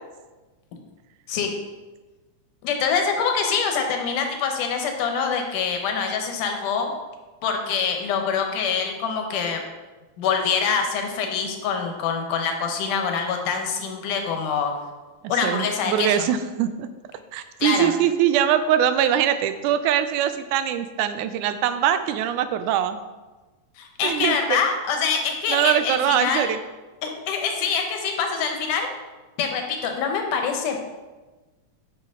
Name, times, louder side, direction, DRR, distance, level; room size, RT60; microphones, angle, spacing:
voice 1, 2.6-6.9 7.4-9.6 10.2-14.8 15.3-16.3 17.6-17.9 23.8-26.5 27.0-28.9 29.4-30.8, left 6 dB, 85° left, 4 dB, 2.5 m, -25 dB
voice 2, 15.4-16.9 17.3-23.0 24.0-24.6 25.5-26.6, right 10 dB, 80° right, 11 dB, 2.0 m, -22 dB
8.9 x 6.0 x 3.7 m, 1.2 s
omnidirectional pair, 3.6 m